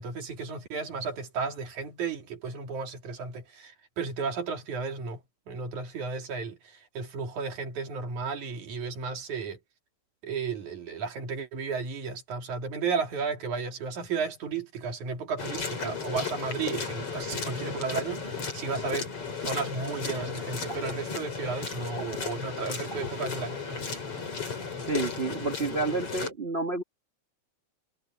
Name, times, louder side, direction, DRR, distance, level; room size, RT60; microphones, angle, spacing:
voice 1, 0.0-9.6 10.2-19.1 19.4-23.8, right 5 dB, 85° right, 4.3 m, -34 dB
sound 1, 15.4-26.3, left 5 dB, 50° left, 5.8 m, -35 dB
voice 2, 24.9-26.8, right 3 dB, 55° right, 0.6 m, -30 dB
omnidirectional pair, 3.3 m